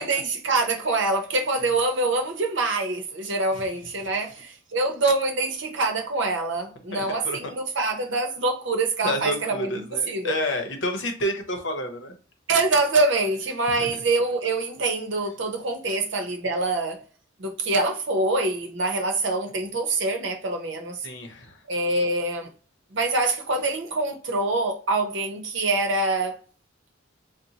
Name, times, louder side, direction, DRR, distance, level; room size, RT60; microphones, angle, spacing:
voice 1, 0.0-10.4 12.5-17.0 17.4-21.0 21.7-22.5 22.9-26.4, right 2 dB, 65° right, 0.7 m, -25 dB
voice 2, 6.9-7.5 9.0-12.1 13.7-14.0 15.9-16.0 21.0-21.6, left 1 dB, 65° left, 0.8 m, -30 dB
4.1 x 2.1 x 2.8 m
head